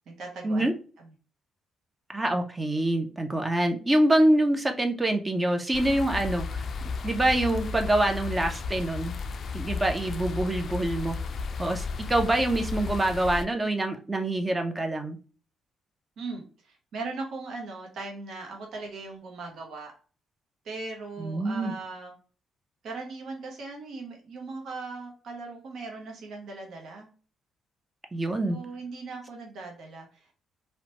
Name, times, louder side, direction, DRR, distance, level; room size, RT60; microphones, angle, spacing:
voice 1, 0.1-0.7 16.2-19.9 20.6-22.1 22.8-27.1 28.5-30.4, right 3 dB, 65° right, 1 dB, 0.7 m, -39 dB
voice 2, 2.1-9.2 9.5-11.2 11.6-15.2 21.2-21.7 28.1-28.6, right 1 dB, 20° right, 5 dB, 0.4 m, -25 dB
sound 1, 5.7-13.4, left 4 dB, 50° left, 0.3 m, -34 dB
2.8 x 2.1 x 2.8 m, 0.38 s
cardioid pair, 90°, 0 cm